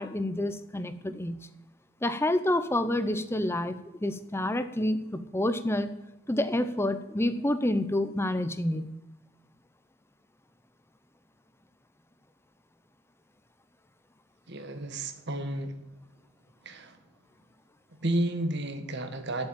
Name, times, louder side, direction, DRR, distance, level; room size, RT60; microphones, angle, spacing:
voice 1, 0.0-1.5 2.0-5.9 6.3-8.9, left 1 dB, 10° left, 11 dB, 0.7 m, -28 dB
voice 2, 14.5-15.8 16.6-17.0 18.0-19.5, right 1 dB, 55° right, 8 dB, 1.5 m, -32 dB
10.0 x 8.5 x 8.9 m, 0.90 s
head